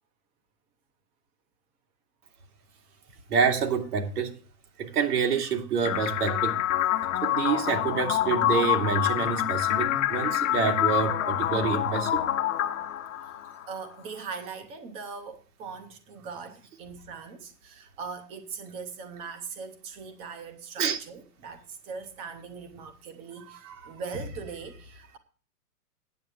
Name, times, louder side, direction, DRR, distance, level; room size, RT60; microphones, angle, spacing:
voice 1, 2.7-3.2 7.2-7.4 13.7-25.2, right 5 dB, 10° right, 0.7 m, -40 dB
voice 2, 3.3-4.3 4.8-6.6 7.2-12.3 20.8-21.0 23.4-23.9, right 6 dB, 70° right, 2.6 m, -27 dB
sound 1, 5.9-13.8, left 12 dB, 55° left, 1.1 m, -27 dB
9.2 x 7.5 x 6.5 m
hypercardioid pair, 160°, 47 cm